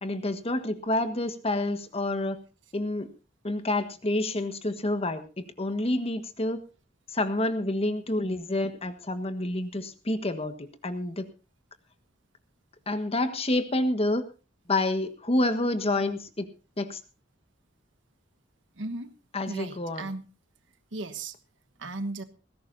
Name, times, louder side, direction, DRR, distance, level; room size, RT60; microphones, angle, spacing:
voice 1, 0.0-2.4 2.7-3.1 3.4-6.6 7.1-11.3 12.9-14.2 14.7-16.5 16.8-17.0 19.3-20.1, left 1 dB, 30° left, 9 dB, 1.5 m, -28 dB
voice 2, 18.7-19.1 19.5-20.3 20.9-21.3 21.8-22.2, right 2 dB, 75° right, 9 dB, 1.3 m, -35 dB
19.5 x 16.5 x 2.7 m, 0.32 s
head